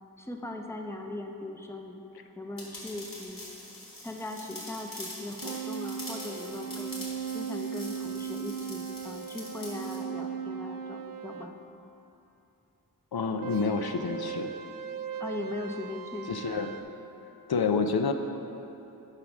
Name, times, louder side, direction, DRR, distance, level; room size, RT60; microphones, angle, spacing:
voice 1, 0.2-2.0 2.4-3.5 4.0-7.0 7.3-11.5 15.2-16.3, left 2 dB, 5° left, 3 dB, 0.6 m, -39 dB
sound 1, 2.6-10.0, left 1 dB, 60° left, 2.1 m, -44 dB
sound 2, 5.4-11.5 13.4-16.8, right 7 dB, 60° right, 0.5 m, -38 dB
voice 2, 13.1-14.5 16.3-16.7 17.5-18.1, left 5 dB, 75° left, 6 dB, 0.6 m, -28 dB
8.8 x 4.9 x 6.0 m, 2.9 s
wide cardioid pair, 85°, 38 cm